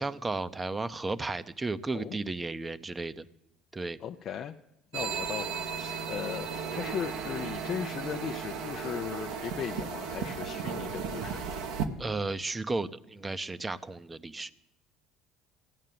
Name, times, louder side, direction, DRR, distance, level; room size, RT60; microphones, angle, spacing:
voice 1, 0.0-3.3 3.7-4.0 12.0-14.5, right 3 dB, 20° right, 14 dB, 0.7 m, -34 dB
voice 2, 4.0-4.6 4.9-11.4, left 8 dB, 50° left, 5 dB, 0.5 m, -37 dB
sound 1, 4.9-11.9, right 6 dB, 75° right, 1.1 m, -35 dB
sound 2, 6.7-10.1, right 5 dB, 55° right, 1.5 m, -44 dB
15.5 x 6.6 x 9.3 m, 0.90 s
hypercardioid pair, 70°, 0 cm